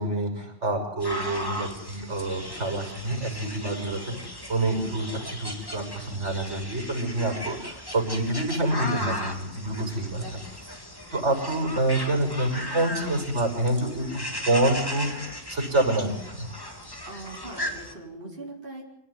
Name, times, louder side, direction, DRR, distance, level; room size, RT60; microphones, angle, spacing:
voice 1, 0.0-4.2 4.5-5.1 5.4-10.2 11.1-16.5, right 1 dB, 80° right, 3 dB, 6.9 m, -27 dB
sound 1, 1.0-17.9, left 1 dB, 20° left, 3.2 m, -37 dB
voice 2, 4.8-5.2 10.2-10.4 17.1-18.8, right 2 dB, 45° right, -2 dB, 4.7 m, -41 dB
27.0 x 18.5 x 9.9 m, 0.79 s
omnidirectional pair, 1.2 m